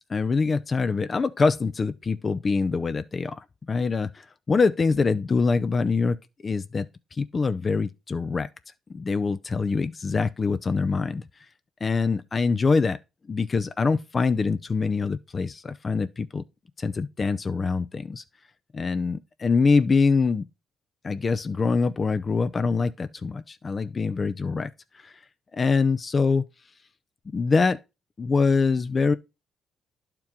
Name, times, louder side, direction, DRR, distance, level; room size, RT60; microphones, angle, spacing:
voice 1, 0.1-6.2 6.4-6.9 7.1-8.5 8.9-11.2 11.8-13.0 13.3-16.4 16.8-18.2 18.7-20.4 21.0-24.7 25.0-25.1 25.5-26.4 27.3-27.8 28.2-29.1, left 4 dB, 35° left, 0.5 m, -24 dB
10.5 x 4.4 x 3.7 m
cardioid pair, 90°, 0 cm